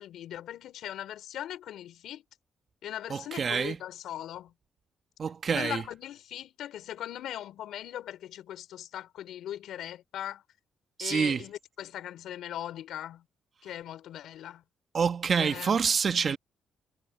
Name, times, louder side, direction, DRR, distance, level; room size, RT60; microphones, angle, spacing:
voice 1, 0.0-2.2 2.8-4.5 5.5-10.4 11.0-13.2 13.6-14.6 15.3-15.7, left 11 dB, 80° left, 4.6 m, -39 dB
voice 2, 3.1-3.8 5.2-5.8 11.0-11.4 14.9-16.4, right 6 dB, 45° right, 1.8 m, -27 dB
cardioid pair, 90°, 0 cm